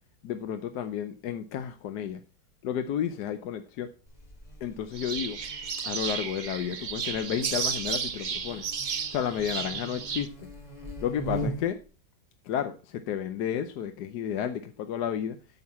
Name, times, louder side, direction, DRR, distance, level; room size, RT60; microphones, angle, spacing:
voice 1, 0.2-2.2 2.6-3.9 4.6-5.4 5.8-8.7 9.1-10.3 11.0-11.8 12.4-15.4, left 9 dB, 80° left, 1.3 m, -32 dB
Buzz, 4.1-11.8, right 1 dB, 25° left, 2.2 m, -41 dB
sound 1, 4.9-10.3, right 6 dB, 55° right, 0.5 m, -33 dB
9.5 x 7.9 x 4.2 m
omnidirectional pair, 1.8 m